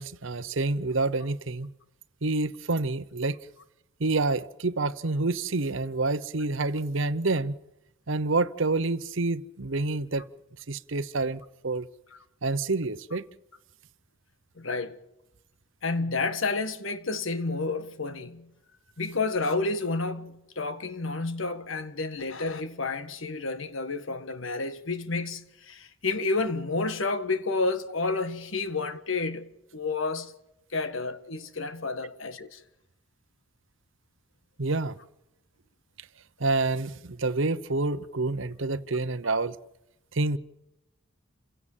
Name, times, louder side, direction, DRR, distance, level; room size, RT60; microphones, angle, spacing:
voice 1, 0.0-1.7 2.2-3.4 4.0-7.5 8.1-10.3 10.7-11.9 12.4-13.3 34.6-35.0 36.4-39.6 40.1-40.4, right 3 dB, 65° right, 0.9 m, -28 dB
voice 2, 14.6-15.0 15.8-18.5 19.0-30.3 30.7-32.6, left 3 dB, 70° left, 1.6 m, -30 dB
29.0 x 16.5 x 7.4 m
head